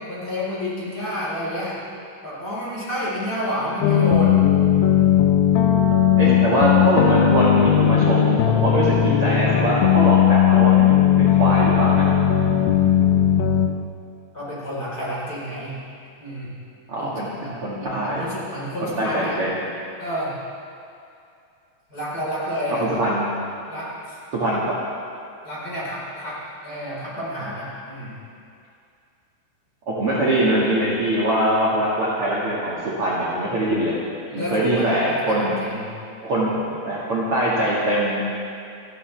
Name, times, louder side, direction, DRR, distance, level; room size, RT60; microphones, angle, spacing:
voice 1, 0.1-1.8 2.2-4.4 14.3-15.7 16.2-16.5 17.0-19.4 20.0-20.3 21.9-23.0 23.7-24.2 25.4-28.2 30.1-30.2 34.3-35.9, equal, 20° left, -8 dB, 4.2 m, -30 dB
sound 1, 3.8-13.7, left 9 dB, 90° left, 2.3 m, -17 dB
voice 2, 6.2-12.0 16.9-17.3 17.6-18.2 18.8-19.5 22.8-23.3 24.4-24.7 29.9-33.9 34.3-35.5 36.2-38.2, right 1 dB, 55° right, -7 dB, 1.5 m, -22 dB
29.0 x 12.5 x 3.5 m, 2.5 s
omnidirectional pair, 6.0 m